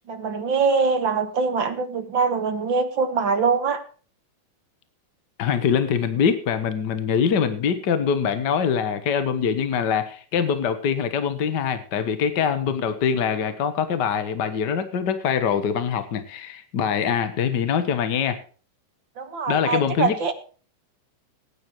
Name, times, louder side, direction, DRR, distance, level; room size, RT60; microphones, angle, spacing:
voice 1, 0.1-3.8 19.2-20.3, right 5 dB, 50° right, 7 dB, 1.6 m, -23 dB
voice 2, 5.4-18.4 19.5-20.1, left 7 dB, 65° left, 11 dB, 1.0 m, -23 dB
20.5 x 9.9 x 3.0 m, 0.40 s
omnidirectional pair, 3.6 m